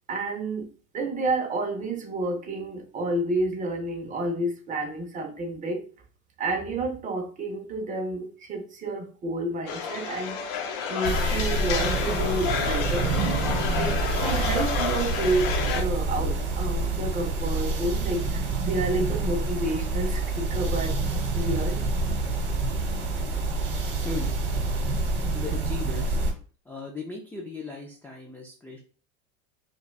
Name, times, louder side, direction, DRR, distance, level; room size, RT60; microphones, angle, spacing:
voice 1, 0.1-0.7 0.9-5.8 6.4-13.1 13.8-21.0 21.3-21.8, right 2 dB, 25° right, 4 dB, 0.7 m, -30 dB
sound 1, 9.7-15.8, left 6 dB, 60° left, 0.8 m, -30 dB
sound 2, 11.0-26.3, right 3 dB, 60° right, 1.5 m, -27 dB
voice 2, 25.3-26.2 26.7-28.8, left 3 dB, 5° left, -2 dB, 0.3 m, -37 dB
4.7 x 2.3 x 2.3 m, 0.38 s
supercardioid pair, 135°, 32 cm